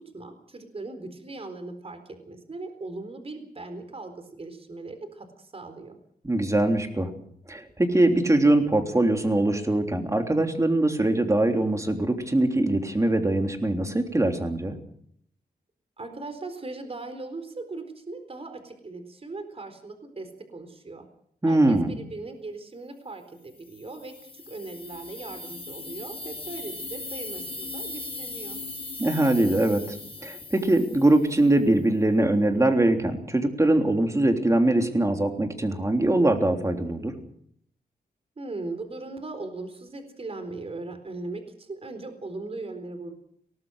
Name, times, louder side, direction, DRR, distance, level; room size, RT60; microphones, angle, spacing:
voice 1, 0.1-2.0 2.3-6.0 16.0-21.1 21.5-28.6 38.4-43.1, right 3 dB, 35° right, 8 dB, 4.2 m, -39 dB
voice 2, 6.2-7.1 7.5-14.8 21.4-22.0 29.0-30.0 30.2-37.1, right 1 dB, 20° right, 4 dB, 3.4 m, -22 dB
sound 1, 23.7-31.6, left 3 dB, 35° left, 4.2 m, -39 dB
23.0 x 19.5 x 6.5 m, 0.68 s
wide cardioid pair, 95°, 17 cm